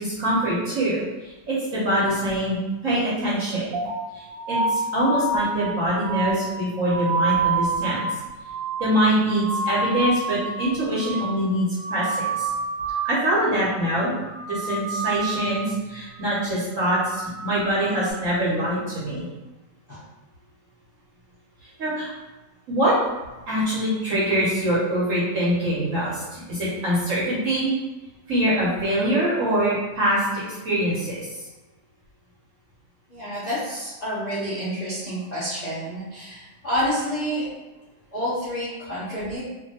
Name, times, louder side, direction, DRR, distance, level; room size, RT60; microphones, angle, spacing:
voice 1, 0.0-3.7 4.1-8.1 8.8-12.5 13.0-14.1 14.5-19.3 21.6-22.1 22.7-22.9 23.5-27.7 28.3-31.3, right 1 dB, 60° right, -8 dB, 0.9 m, -24 dB
sound 1, 3.7-10.7 11.0-11.5 11.8-13.2 13.5-14.0 14.3-15.7 16.1-16.4 16.8-18.1, right 3 dB, 85° right, 1.4 m, -28 dB
voice 2, 33.1-37.5 38.1-39.4, equal, 60° left, -11 dB, 0.4 m, -28 dB
2.7 x 2.5 x 2.7 m, 1.1 s
omnidirectional pair, 2.0 m